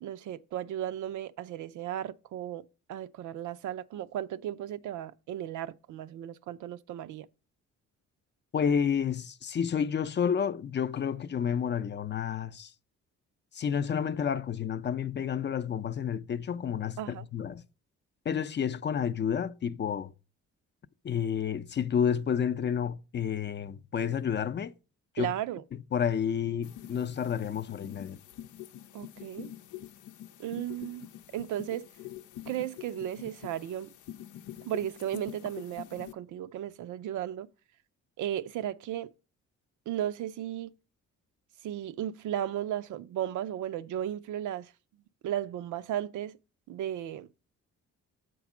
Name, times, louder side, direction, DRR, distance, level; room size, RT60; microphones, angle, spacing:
voice 1, 0.0-7.3 17.0-17.3 25.2-25.6 28.9-29.5 30.4-31.1 31.3-31.9 32.5-33.9 34.6-37.5 38.2-39.1 39.9-40.7 41.6-44.7 45.2-46.4 46.7-47.3, right 11 dB, 75° right, 0.6 m, -35 dB
voice 2, 8.5-12.7 13.5-17.6 18.3-20.1 21.0-24.7 25.1-25.3 25.9-28.2, left 7 dB, 35° left, 0.5 m, -30 dB
sound 1, 26.6-36.1, left 12 dB, 90° left, 0.7 m, -46 dB
7.2 x 4.6 x 6.0 m
cardioid pair, 90°, 30 cm